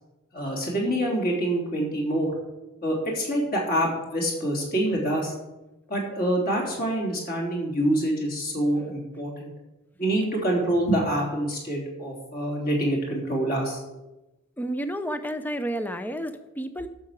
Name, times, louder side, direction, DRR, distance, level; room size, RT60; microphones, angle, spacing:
voice 1, 0.3-2.3 2.8-5.3 5.9-9.5 10.0-13.8, right 1 dB, 45° left, -1 dB, 3.3 m, -26 dB
voice 2, 14.6-16.9, right 1 dB, 10° left, 9 dB, 0.6 m, -31 dB
11.5 x 6.5 x 7.4 m, 1.0 s
head